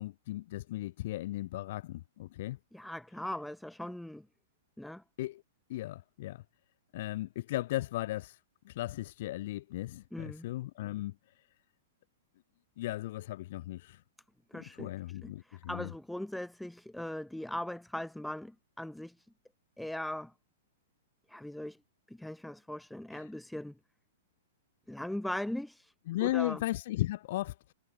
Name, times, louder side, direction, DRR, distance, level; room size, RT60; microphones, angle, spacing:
voice 1, 0.0-2.6 5.2-5.4 5.7-6.4 6.9-8.4 8.6-11.1 12.8-14.0 14.8-15.9 23.1-23.2 26.1-27.7, left 16 dB, 50° left, 2.8 m, -36 dB
voice 2, 2.7-4.3 4.8-5.0 10.1-10.5 14.5-14.9 15.2-19.3 19.8-20.3 21.3-21.8 22.1-23.7 24.9-25.9 26.2-26.6, left 1 dB, ahead, 4.2 m, -39 dB
figure-of-eight pair, 105°, 0 cm